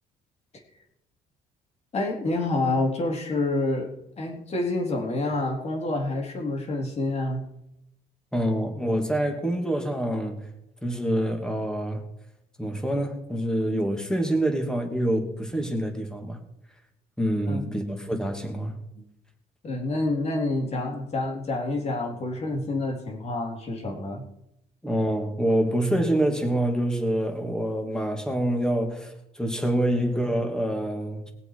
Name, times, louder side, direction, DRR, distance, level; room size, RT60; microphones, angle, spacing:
voice 1, 1.9-7.4 17.5-17.7 19.0-19.1 19.6-24.2, left 2 dB, 40° left, 1 dB, 3.7 m, -28 dB
voice 2, 8.3-10.5 10.8-12.0 12.6-16.4 17.2-18.8 24.8-31.3, right 1 dB, 5° left, 3 dB, 2.7 m, -26 dB
21.0 x 7.7 x 5.0 m, 0.81 s
cardioid pair, 110°, 17 cm